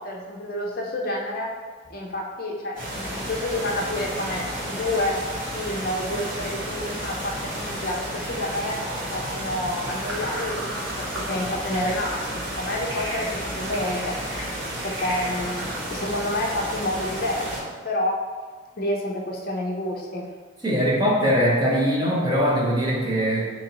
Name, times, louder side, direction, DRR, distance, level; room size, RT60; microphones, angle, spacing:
voice 1, 0.0-1.5 1.9-5.2 5.5-8.8 9.1-14.2 14.8-18.2 18.8-20.3, left 1 dB, 45° left, 0 dB, 0.4 m, -29 dB
sound 1, 2.8-17.6, equal, 45° right, 1.2 m, -32 dB
sound 2, 8.3-15.8, right 1 dB, 75° right, 0.8 m, -38 dB
voice 2, 20.6-23.5, equal, 20° right, -4 dB, 0.7 m, -21 dB
4.0 x 2.9 x 2.8 m, 1.5 s
head